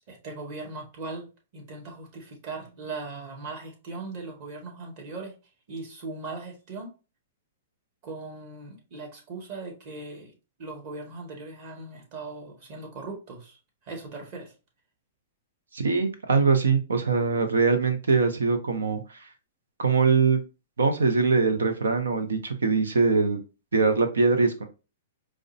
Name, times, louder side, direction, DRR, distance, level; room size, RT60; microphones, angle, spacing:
voice 1, 0.1-5.3 5.7-6.9 8.0-10.3 10.6-13.6 13.8-14.5, right 3 dB, 45° right, 1 dB, 1.5 m, -39 dB
voice 2, 15.7-19.3 19.8-20.4 20.8-23.4 23.7-24.7, right 4 dB, 90° right, 8 dB, 0.7 m, -22 dB
4.8 x 2.1 x 2.7 m, 0.31 s
hypercardioid pair, 130°, 0 cm